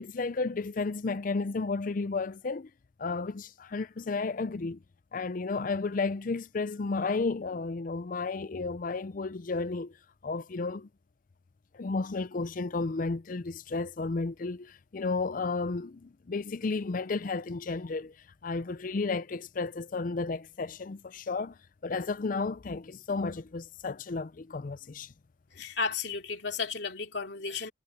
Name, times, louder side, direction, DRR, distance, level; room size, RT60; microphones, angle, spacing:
voice 1, 0.0-2.7 3.0-4.8 5.1-9.9 10.2-10.9 11.7-18.1 18.4-21.6 21.8-25.1, left 3 dB, 45° left, 0.5 m, -32 dB
voice 2, 25.5-27.7, left 4 dB, 60° left, 3.1 m, -33 dB
head